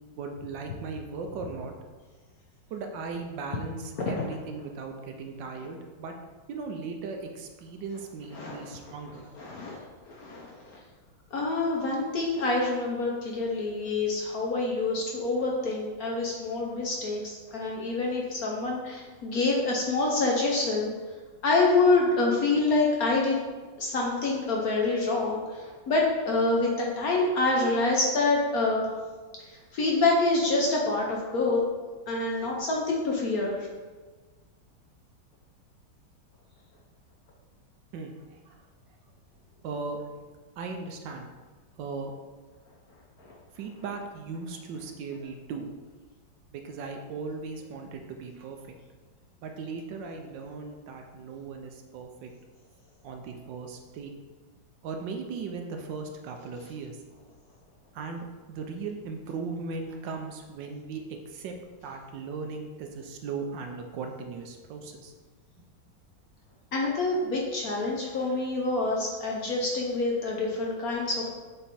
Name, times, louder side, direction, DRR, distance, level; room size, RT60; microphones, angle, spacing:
voice 1, 0.2-1.7 2.7-6.1 6.5-9.3 37.9-38.6 39.6-40.1 40.6-41.3 41.8-42.1 43.6-45.7 46.5-48.8 49.4-52.3 53.0-54.1 54.8-57.0 57.9-61.5 61.8-65.1, right 4 dB, 75° right, 4 dB, 1.2 m, -38 dB
voice 2, 8.3-8.7 9.4-9.8 10.1-10.5 11.3-20.9 21.4-23.4 23.8-25.4 25.9-28.9 29.7-31.6 32.1-33.7 66.7-71.3, left 3 dB, 60° left, -1 dB, 1.0 m, -26 dB
7.1 x 3.3 x 4.2 m, 1.4 s
omnidirectional pair, 2.2 m